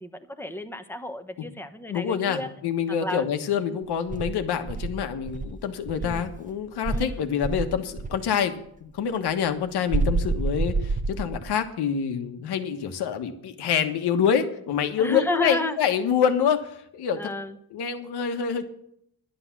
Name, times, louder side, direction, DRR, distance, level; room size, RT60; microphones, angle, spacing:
voice 1, 0.0-2.5 2.9-3.3 3.7-3.8 6.0-6.3 6.8-7.1 15.0-15.8 17.2-17.6, left 1 dB, 5° left, 7 dB, 1.1 m, -32 dB
voice 2, 1.9-17.2 17.7-18.6, left 7 dB, 80° left, 6 dB, 1.5 m, -26 dB
Insect, 4.1-6.4 6.8-8.3 9.9-11.6, right 3 dB, 20° right, 0.7 m, -28 dB
11.0 x 10.5 x 6.1 m, 0.70 s
cardioid pair, 95°, 39 cm